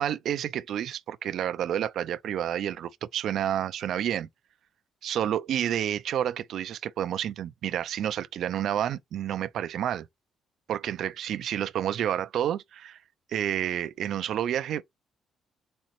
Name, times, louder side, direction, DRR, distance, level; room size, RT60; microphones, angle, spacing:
voice 1, 0.0-4.3 5.0-10.1 10.7-13.0 13.3-14.8, right 10 dB, 65° right, 0.4 m, -29 dB
4.3 x 2.8 x 4.3 m
cardioid pair, 150°, 0 cm